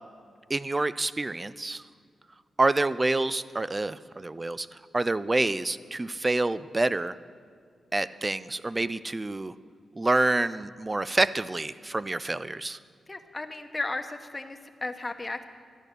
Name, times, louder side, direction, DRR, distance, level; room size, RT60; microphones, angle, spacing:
voice 1, 0.5-1.8 2.6-4.7 4.9-7.1 7.9-9.5 10.0-12.8, right 2 dB, 25° right, 16 dB, 0.4 m, -27 dB
voice 2, 13.1-15.4, left 2 dB, 20° left, 5 dB, 1.1 m, -35 dB
13.5 x 10.5 x 6.7 m, 2.1 s
cardioid pair, 95°, 0 cm